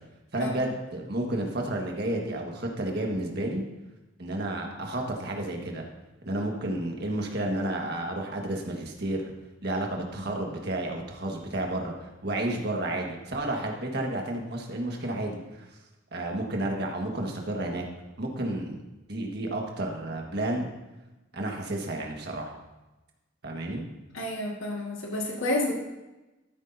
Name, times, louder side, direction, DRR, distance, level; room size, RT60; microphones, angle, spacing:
voice 1, 0.3-3.6 4.2-5.8 6.2-9.3 9.6-15.6 16.1-17.8 18.2-18.8 19.1-20.7 21.3-22.5 23.4-23.8, right 1 dB, 55° right, 1 dB, 1.6 m, -31 dB
voice 2, 24.1-25.7, left 1 dB, 85° left, -1 dB, 1.8 m, -30 dB
13.0 x 9.9 x 2.7 m, 1.0 s
head